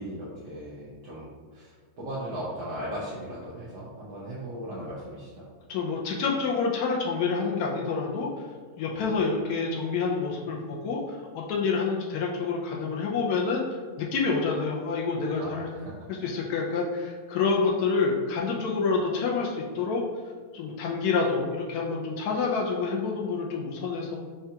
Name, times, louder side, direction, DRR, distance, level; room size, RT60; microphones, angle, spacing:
voice 1, 0.0-5.5 8.9-9.0 15.4-15.9, right 1 dB, 60° right, -9 dB, 1.3 m, -37 dB
voice 2, 5.7-8.3 8.8-13.6 14.0-15.7 16.2-20.0 20.5-24.2, left 4 dB, 90° left, -1 dB, 0.8 m, -28 dB
6.7 x 2.3 x 2.8 m, 1.5 s
omnidirectional pair, 2.3 m